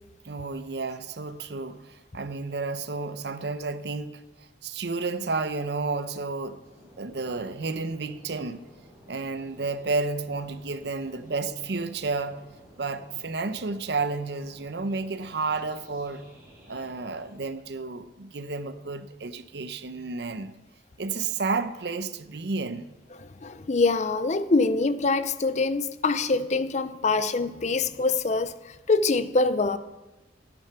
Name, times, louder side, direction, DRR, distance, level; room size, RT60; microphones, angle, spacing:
voice 1, 0.2-6.6 7.0-8.6 9.1-12.5 12.8-16.2 16.7-20.5 21.0-22.9, right 3 dB, 65° right, 0.7 m, -31 dB
sound 1, 6.6-17.5, equal, 15° right, 4.6 m, -54 dB
voice 2, 23.4-29.8, left 3 dB, 40° left, 0.5 m, -24 dB
13.0 x 9.7 x 5.9 m
head